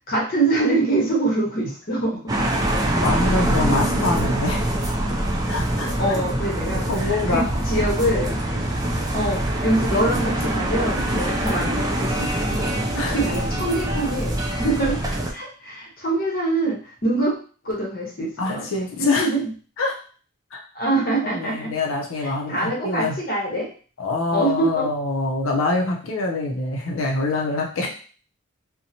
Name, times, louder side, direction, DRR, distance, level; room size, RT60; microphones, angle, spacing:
voice 1, 0.1-2.2 5.8-7.4 7.7-8.5 9.1-12.6 12.9-17.3 17.6-18.6 19.0-19.4 20.7-21.7 22.2-23.7 24.3-24.9, right 2 dB, 45° left, -3 dB, 1.0 m, -24 dB
sound 1, 2.3-15.3, right 1 dB, 20° right, 0.3 m, -24 dB
voice 2, 3.0-4.6 5.5-6.2 6.9-7.5 13.0-13.2 18.4-19.3 19.8-20.0 20.5-20.6 21.2-23.2 24.0-27.9, left 3 dB, 80° left, 0 dB, 0.5 m, -25 dB
2.8 x 2.1 x 2.7 m, 0.40 s
head